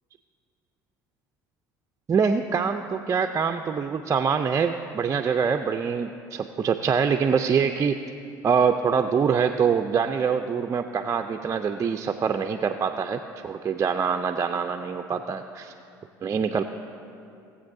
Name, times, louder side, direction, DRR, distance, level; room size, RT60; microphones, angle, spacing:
voice 1, 2.1-8.0 8.4-15.7 16.2-16.6, right 6 dB, 30° right, 5 dB, 0.4 m, -24 dB
18.5 x 7.9 x 2.6 m, 2.6 s
hypercardioid pair, 75°, 10 cm